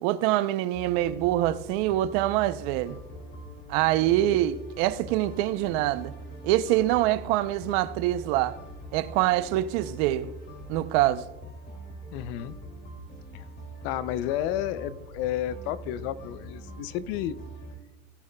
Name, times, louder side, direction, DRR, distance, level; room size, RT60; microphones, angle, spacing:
voice 1, 0.0-3.0 3.7-6.1 6.4-8.6 8.9-10.3 10.7-11.2, right 14 dB, 45° right, 0.5 m, -25 dB
sound 1, 0.7-17.8, right 1 dB, 25° left, 2.3 m, -43 dB
voice 2, 3.9-4.4 12.1-12.6 13.3-13.5 13.8-17.4, left 11 dB, 45° left, 0.5 m, -32 dB
18.0 x 7.0 x 2.2 m
supercardioid pair, 135°, 46 cm